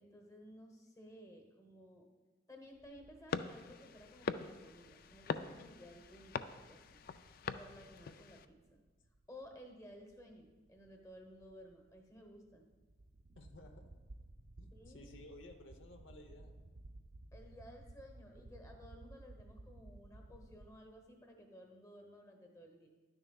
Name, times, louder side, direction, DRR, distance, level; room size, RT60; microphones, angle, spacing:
voice 1, 0.0-2.0 2.5-7.0 7.5-8.8 9.3-12.7 14.7-15.1 17.3-22.9, equal, 15° left, 3 dB, 1.0 m, -56 dB
sound 1, 2.8-20.7, right 2 dB, 50° right, 0.5 m, -58 dB
sound 2, 3.3-8.5, left 5 dB, 50° left, 0.3 m, -43 dB
voice 2, 13.4-13.9 14.6-16.6, left 1 dB, 80° left, 5 dB, 0.8 m, -56 dB
11.5 x 9.8 x 2.3 m, 1.3 s
head